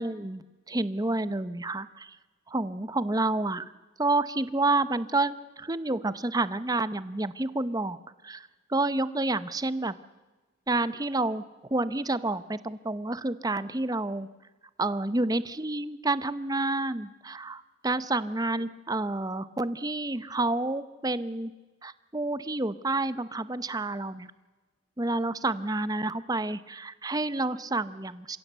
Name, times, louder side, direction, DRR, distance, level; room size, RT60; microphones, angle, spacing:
voice 1, 0.0-2.2 2.5-3.7 4.0-8.0 8.2-9.9 10.7-11.4 11.7-14.3 14.8-21.5 21.8-24.3 25.0-28.4, right 2 dB, 20° right, 14 dB, 0.8 m, -29 dB
28.0 x 16.5 x 8.1 m, 1.2 s
head